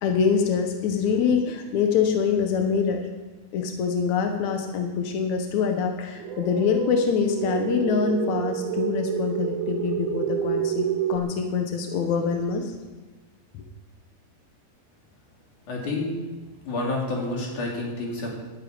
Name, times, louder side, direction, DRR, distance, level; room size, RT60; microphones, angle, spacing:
voice 1, 0.0-3.0 3.5-10.8 11.1-12.7, left 6 dB, 70° left, 4 dB, 1.8 m, -24 dB
dinosaur sound, 6.2-11.2, right 9 dB, 75° right, 2.4 m, -28 dB
voice 2, 15.7-16.2 16.7-18.3, left 2 dB, 50° left, -1 dB, 4.1 m, -29 dB
11.5 x 8.9 x 9.6 m, 1.2 s
omnidirectional pair, 4.9 m